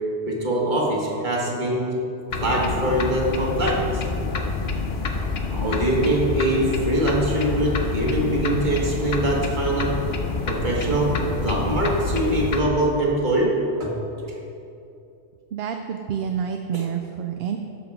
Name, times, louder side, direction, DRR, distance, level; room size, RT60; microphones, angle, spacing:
voice 1, 0.3-1.9 2.4-4.0 5.5-9.9 10.4-13.5 13.8-13.9 16.7-16.8, right 1 dB, 40° right, -2 dB, 1.7 m, -23 dB
sound 1, 2.3-12.6, left 4 dB, 60° left, 1.0 m, -27 dB
voice 2, 15.5-17.6, right 8 dB, 65° right, 5 dB, 0.7 m, -28 dB
12.0 x 7.0 x 4.8 m, 2.7 s
omnidirectional pair, 1.2 m